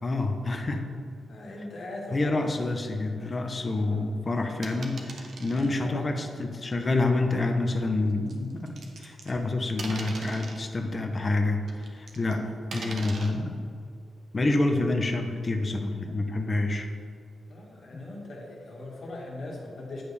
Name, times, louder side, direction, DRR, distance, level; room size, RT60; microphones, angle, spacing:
voice 1, 0.0-0.9 2.1-13.6 14.3-16.9, left 2 dB, 30° left, 4 dB, 0.6 m, -28 dB
voice 2, 1.3-2.5 3.8-4.0 5.5-6.0 17.5-20.0, left 2 dB, 60° left, -2 dB, 1.5 m, -40 dB
sound 1, 4.6-5.7 6.7-6.9 8.3-9.4 9.8-10.6 11.7-12.3 12.7-13.3, right 3 dB, 65° right, 0.8 m, -40 dB
8.6 x 5.0 x 3.2 m, 2.3 s
cardioid pair, 100°, 0 cm